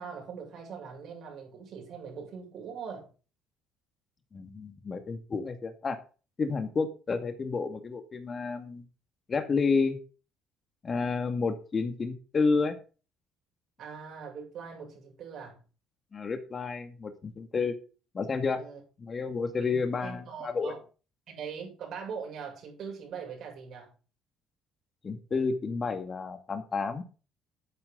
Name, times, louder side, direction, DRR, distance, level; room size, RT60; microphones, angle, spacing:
voice 1, 0.0-3.1 13.8-15.6 18.6-18.8 19.6-20.8 21.3-23.9, right 6 dB, 60° right, 7.2 m, -41 dB
voice 2, 4.3-6.0 6.4-8.8 9.3-10.0 10.8-12.8 16.1-17.8 18.1-18.6 19.0-20.7 25.0-27.0, left 4 dB, 35° left, 2.1 m, -30 dB
12.0 x 8.8 x 3.9 m
supercardioid pair, 80°, 0 cm